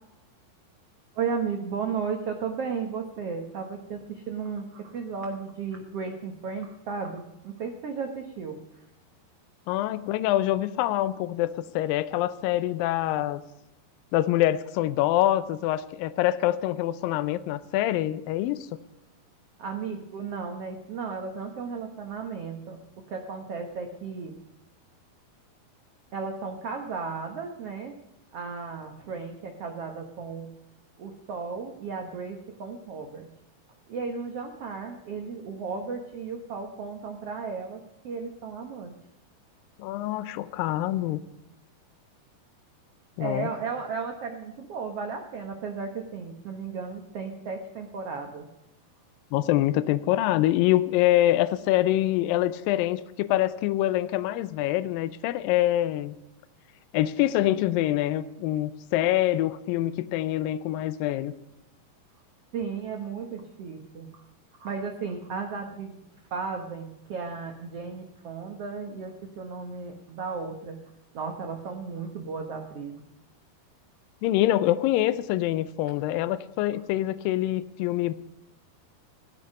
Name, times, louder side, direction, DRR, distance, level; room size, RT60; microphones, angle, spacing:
voice 1, 1.1-8.6 19.6-24.4 26.1-27.9 28.3-30.5 31.0-33.3 33.9-38.9 43.2-48.5 62.5-64.1 64.5-66.0 66.3-70.8 71.1-73.1, right 5 dB, 80° right, 3 dB, 1.3 m, -34 dB
voice 2, 9.7-13.4 14.1-18.6 39.8-41.2 43.2-43.5 49.3-56.2 56.9-61.3 74.2-78.1, left 14 dB, 80° left, 14 dB, 2.1 m, -25 dB
17.0 x 13.0 x 5.4 m, 0.89 s
omnidirectional pair, 4.6 m